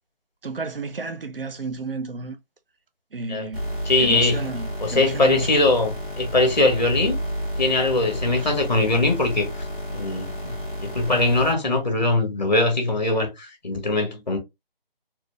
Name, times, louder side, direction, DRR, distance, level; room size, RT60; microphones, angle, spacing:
voice 1, 0.4-2.4 3.1-3.6 4.0-5.5 8.4-8.5, right 3 dB, 70° right, 0.8 m, -32 dB
sound 1, 3.5-11.5, equal, 5° left, 1.1 m, -31 dB
voice 2, 3.9-4.4 4.8-7.2 7.6-9.5 9.9-14.4, left 2 dB, 45° left, 1.6 m, -21 dB
4.3 x 2.4 x 3.3 m
figure-of-eight pair, 175°, 30 cm